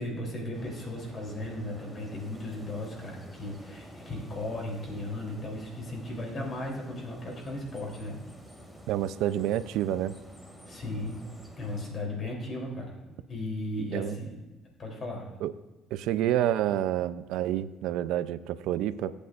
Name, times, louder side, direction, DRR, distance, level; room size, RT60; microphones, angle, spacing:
voice 1, 0.0-8.2 10.7-11.3 11.6-13.0 13.3-14.3 14.8-15.3, left 1 dB, 40° left, -1 dB, 3.4 m, -36 dB
sound 1, 0.5-11.9, equal, 5° left, 2.4 m, -49 dB
voice 2, 8.9-10.2 13.9-14.2 15.4-15.5 15.9-19.1, right 12 dB, 80° right, 14 dB, 0.5 m, -28 dB
22.0 x 8.5 x 2.5 m, 1.2 s
cardioid pair, 105°, 0 cm